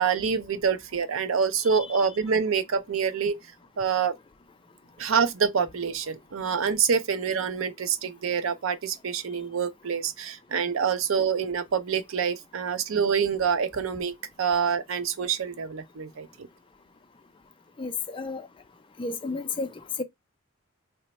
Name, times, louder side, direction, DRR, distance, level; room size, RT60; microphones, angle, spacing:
voice 1, 0.0-3.4 3.8-4.1 5.0-16.5, right 6 dB, 80° right, 0.5 m, -26 dB
voice 2, 17.8-18.5 19.0-19.7 20.0-20.1, left 3 dB, 25° left, 0.4 m, -31 dB
3.0 x 2.1 x 4.1 m
head